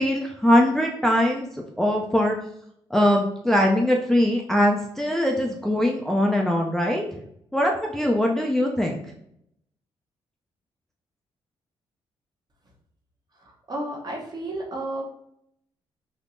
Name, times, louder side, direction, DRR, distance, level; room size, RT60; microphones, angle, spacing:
voice 1, 0.0-1.5 1.8-2.4 2.9-7.0 7.5-9.0, left 1 dB, 5° left, 0 dB, 0.4 m, -21 dB
voice 2, 13.7-15.0, right 1 dB, 40° right, 0 dB, 1.0 m, -31 dB
3.5 x 2.8 x 2.6 m, 0.72 s
cardioid pair, 75°, 10 cm